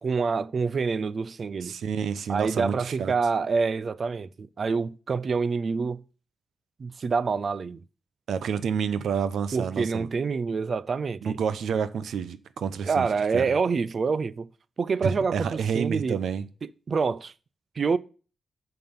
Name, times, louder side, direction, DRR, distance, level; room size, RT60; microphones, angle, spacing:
voice 1, 0.0-1.7 2.3-6.0 6.8-7.8 9.5-11.4 12.8-14.5 14.8-16.2 16.6-17.3 17.8-18.0, right 5 dB, 40° right, 0.5 m, -27 dB
voice 2, 1.6-3.1 8.3-10.1 11.2-13.1 13.3-13.5 15.0-16.4, right 7 dB, 75° right, 0.8 m, -29 dB
9.0 x 5.9 x 7.2 m
wide cardioid pair, 170°, 0 cm